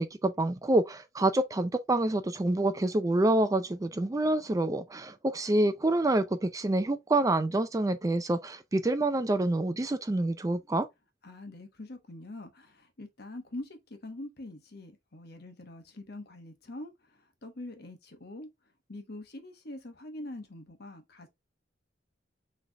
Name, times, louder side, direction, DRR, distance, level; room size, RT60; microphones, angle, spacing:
voice 1, 0.0-10.9, right 2 dB, 20° right, 0.4 m, -27 dB
voice 2, 11.2-18.5 18.9-21.3, left 1 dB, 55° left, 1.1 m, -44 dB
6.3 x 3.3 x 2.3 m
head